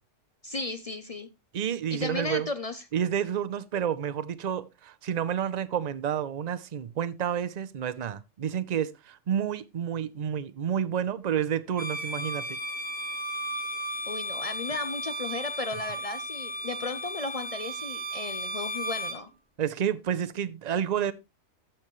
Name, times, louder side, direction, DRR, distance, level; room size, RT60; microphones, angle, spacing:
voice 1, 0.4-1.3 1.9-2.8 14.0-19.3, left 3 dB, 50° left, 0.4 m, -35 dB
voice 2, 1.5-2.5 2.9-12.6 19.6-21.1, right 9 dB, 45° right, 0.6 m, -30 dB
Bowed string instrument, 11.7-19.2, right 1 dB, 5° right, 1.8 m, -35 dB
14.0 x 5.9 x 3.1 m
omnidirectional pair, 1.3 m